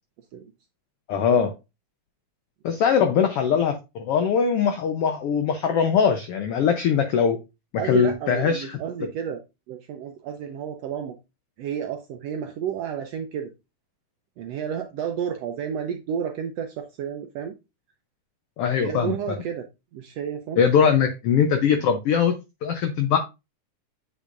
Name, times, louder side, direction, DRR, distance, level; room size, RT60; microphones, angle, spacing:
voice 1, 1.1-1.5 2.6-7.4 7.8-8.8 18.6-19.1 20.6-22.3 22.6-23.2, left 7 dB, 85° left, 1.3 m, -21 dB
voice 2, 7.8-9.4 9.7-11.2 11.6-13.5 14.4-17.5 18.8-20.6, right 8 dB, 80° right, 1.5 m, -31 dB
8.3 x 5.5 x 2.5 m
omnidirectional pair, 3.6 m